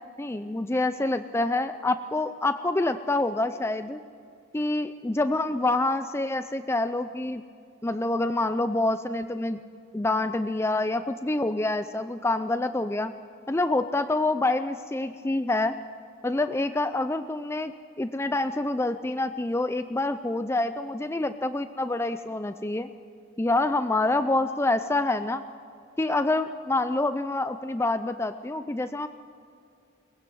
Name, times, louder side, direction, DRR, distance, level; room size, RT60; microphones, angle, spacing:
voice 1, 0.2-4.0 4.5-7.4 7.8-9.6 9.9-13.1 13.5-15.8 16.2-17.7 18.0-22.9 23.4-25.4 26.0-29.1, left 2 dB, 15° left, 10 dB, 0.4 m, -27 dB
22.5 x 19.5 x 7.7 m, 2.4 s
head